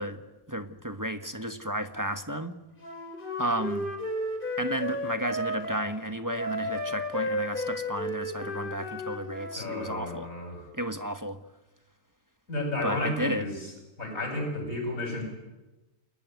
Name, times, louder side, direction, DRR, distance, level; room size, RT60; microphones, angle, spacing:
voice 1, 0.0-2.6 3.4-3.9 4.6-10.3 10.7-11.4 12.8-13.5, equal, 15° right, 7 dB, 0.9 m, -33 dB
Wind instrument woodwind instrument, 2.8-5.9 6.3-9.6, left 1 dB, 25° left, 4.1 m, -33 dB
voice 2, 9.6-10.7 12.5-13.7 14.0-15.2, left 1 dB, 40° left, 3 dB, 8.5 m, -32 dB
29.5 x 20.5 x 9.4 m, 1.1 s
omnidirectional pair, 2.2 m